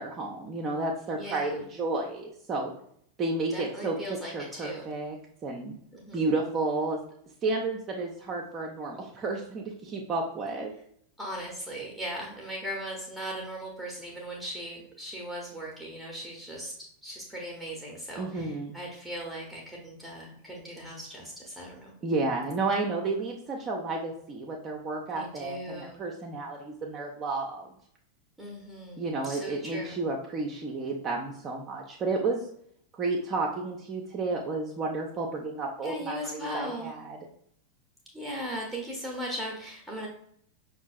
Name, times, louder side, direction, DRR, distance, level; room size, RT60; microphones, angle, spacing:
voice 1, 0.0-2.7 3.2-5.2 5.4-5.7 6.1-7.0 7.4-10.7 18.2-18.7 22.0-27.7 29.0-32.4 32.9-37.2, right 3 dB, 25° right, -1 dB, 0.5 m, -31 dB
voice 2, 1.1-1.6 3.5-4.9 5.9-6.2 11.2-16.7 17.0-21.9 25.1-26.1 28.4-30.0 35.8-36.9 38.1-40.1, equal, ahead, -3 dB, 0.8 m, -38 dB
5.3 x 2.4 x 2.4 m, 0.67 s
figure-of-eight pair, 90°, 0 cm